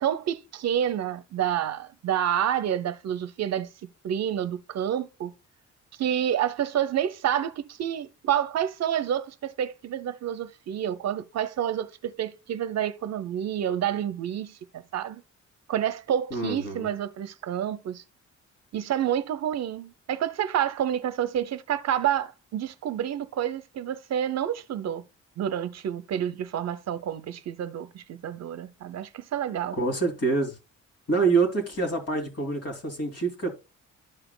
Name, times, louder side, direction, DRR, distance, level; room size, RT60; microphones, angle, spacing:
voice 1, 0.0-5.3 6.0-15.2 15.7-18.0 18.7-25.1 25.4-29.8, right 10 dB, 60° right, 0.7 m, -29 dB
voice 2, 16.3-16.9 29.7-30.5 31.1-33.5, right 4 dB, 55° left, 2.7 m, -26 dB
12.5 x 5.0 x 2.2 m
cardioid pair, 90°, 30 cm